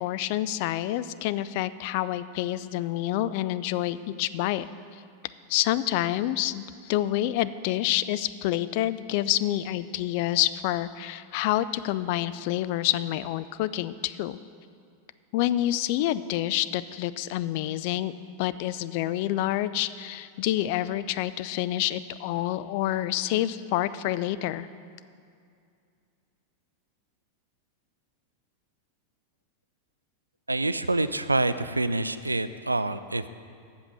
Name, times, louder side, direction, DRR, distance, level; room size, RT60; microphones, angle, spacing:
voice 1, 0.0-4.6 5.5-14.4 15.3-18.1 18.4-24.7, left 14 dB, 45° left, 15 dB, 0.3 m, -28 dB
voice 2, 30.5-33.3, right 2 dB, 80° right, 13 dB, 0.3 m, -26 dB
7.9 x 7.0 x 7.5 m, 2.4 s
figure-of-eight pair, 90°, 0 cm